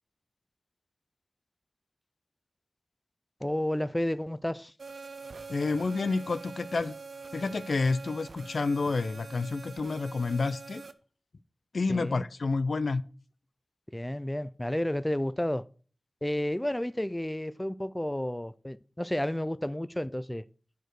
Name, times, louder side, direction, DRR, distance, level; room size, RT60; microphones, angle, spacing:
voice 1, 3.4-4.7 11.9-12.2 13.9-15.6 16.2-20.4, left 1 dB, 10° left, 0.3 m, -31 dB
sound 1, 4.8-10.9, right 4 dB, 85° right, 0.5 m, -45 dB
voice 2, 5.5-6.9 7.3-10.8 11.7-13.0, left 3 dB, 80° left, 0.4 m, -29 dB
10.0 x 4.6 x 4.7 m
wide cardioid pair, 75°, 0 cm